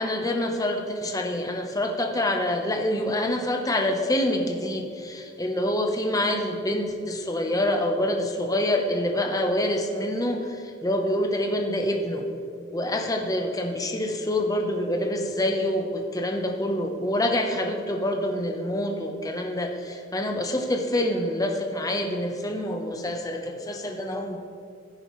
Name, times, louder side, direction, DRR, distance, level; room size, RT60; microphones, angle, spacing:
voice 1, 0.0-12.3 12.7-24.4, left 1 dB, 20° left, 3 dB, 1.0 m, -26 dB
16.5 x 9.9 x 3.2 m, 2.4 s
head